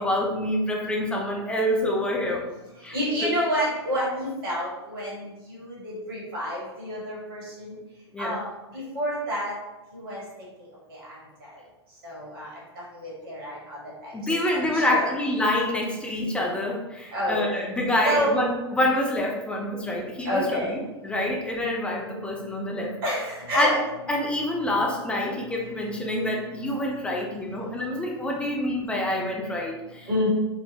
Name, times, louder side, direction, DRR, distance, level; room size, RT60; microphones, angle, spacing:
voice 1, 0.0-2.5 2.8-3.0 3.2-3.3 8.1-8.4 14.1-20.6 21.0-22.9 23.5-23.8 24.1-30.3, left 1 dB, 5° left, -1 dB, 0.4 m, -26 dB
voice 2, 2.9-7.8 8.2-9.6 9.9-10.2 10.9-11.6 12.0-12.5 12.7-15.1 17.1-17.4 18.0-18.4 20.2-20.7 23.0-23.7 24.9-25.2 25.5-26.0 26.4-26.7 27.0-27.8 30.1-30.3, equal, 55° right, -5 dB, 1.4 m, -30 dB
3.8 x 2.1 x 2.7 m, 1.0 s
figure-of-eight pair, 100°, 14 cm